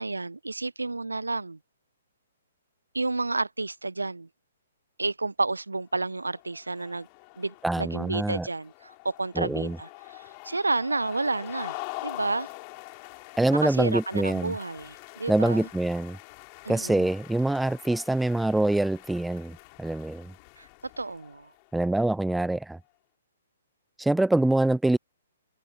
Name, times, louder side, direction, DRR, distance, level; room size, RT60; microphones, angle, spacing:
voice 1, 0.0-1.6 2.9-4.3 5.0-7.1 7.4-12.5 13.5-15.7 16.6-17.1 20.6-20.7 21.0-21.5, right 3 dB, 80° right, 0.8 m, -31 dB
sound 1, 6.1-21.8, left 36 dB, 30° left, 3.4 m, -45 dB
voice 2, 7.6-8.5 9.4-9.8 13.4-14.6 15.3-16.2 16.7-20.3 21.7-22.8 24.0-25.0, right 2 dB, 5° right, 0.3 m, -25 dB
figure-of-eight pair, 125°, 0 cm